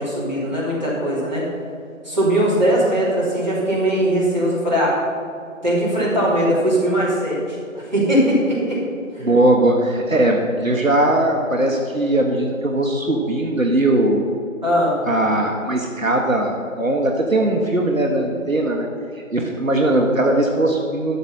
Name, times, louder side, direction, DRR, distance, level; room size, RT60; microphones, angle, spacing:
voice 1, 0.0-1.4 2.0-5.0 5.6-8.8 9.1-9.4 14.6-15.0, equal, 35° right, -8 dB, 2.9 m, -20 dB
voice 2, 9.2-14.2 15.1-18.9 19.1-21.2, right 1 dB, 75° right, 1 dB, 1.3 m, -19 dB
12.0 x 6.2 x 5.6 m, 2.4 s
figure-of-eight pair, 180°, 40 cm